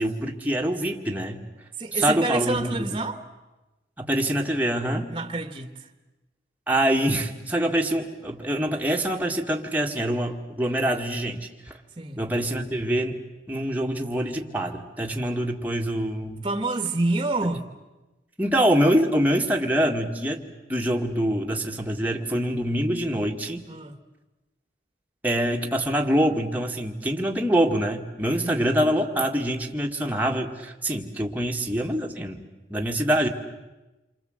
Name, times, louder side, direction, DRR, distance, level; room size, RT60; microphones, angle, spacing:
voice 1, 0.0-1.4 1.9-2.8 4.0-5.2 6.7-11.8 12.2-13.2 13.5-16.5 18.4-23.7 25.2-32.4 32.7-33.3, right 1 dB, 10° right, 1.9 m, -25 dB
voice 2, 1.8-3.2 5.1-5.9 12.0-12.2 16.4-17.6 23.7-24.0 28.4-28.7, right 2 dB, 25° right, 1.6 m, -28 dB
28.5 x 24.5 x 7.9 m
head